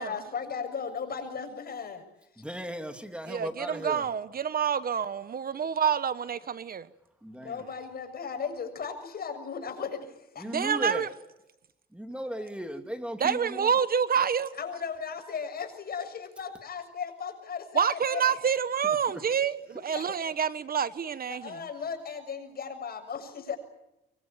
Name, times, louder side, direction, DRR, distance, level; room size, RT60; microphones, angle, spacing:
voice 1, 0.0-2.1 7.4-10.5 14.6-18.4 19.9-20.1 21.3-23.6, left 6 dB, 50° left, 7.1 m, -36 dB
voice 2, 2.4-4.1 7.2-7.7 10.4-11.1 11.9-13.7 18.8-19.2, equal, 5° right, 3.0 m, -36 dB
voice 3, 3.3-6.9 10.4-11.1 13.2-14.5 17.7-21.5, right 7 dB, 50° right, 1.2 m, -27 dB
26.0 x 23.0 x 9.0 m
cardioid pair, 90°, 20 cm